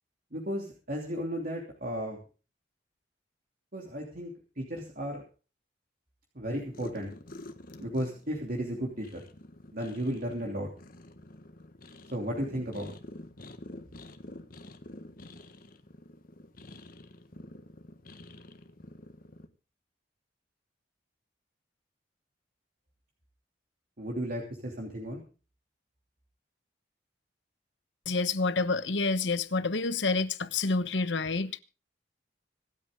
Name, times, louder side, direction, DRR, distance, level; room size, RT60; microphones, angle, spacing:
voice 1, 0.3-2.2 3.7-5.2 6.3-7.1 7.8-9.2 9.7-10.7 12.1-12.9 24.0-25.2, equal, 50° right, 3.0 m, -34 dB
sound 1, 6.6-19.5, left 1 dB, 50° left, 1.6 m, -48 dB
voice 2, 28.1-31.6, left 3 dB, 85° left, 1.1 m, -28 dB
26.0 x 8.8 x 3.8 m
head